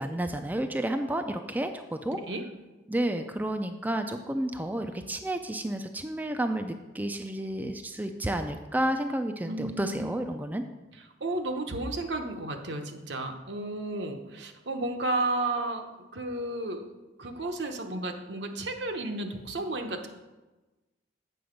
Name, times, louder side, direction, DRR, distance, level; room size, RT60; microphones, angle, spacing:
voice 1, 0.0-2.2 2.9-10.6, right 1 dB, 10° right, 6 dB, 0.4 m, -31 dB
voice 2, 9.5-10.1 11.2-16.9 17.2-20.1, right 2 dB, 70° right, 5 dB, 0.9 m, -33 dB
7.9 x 6.7 x 5.1 m, 1.1 s
head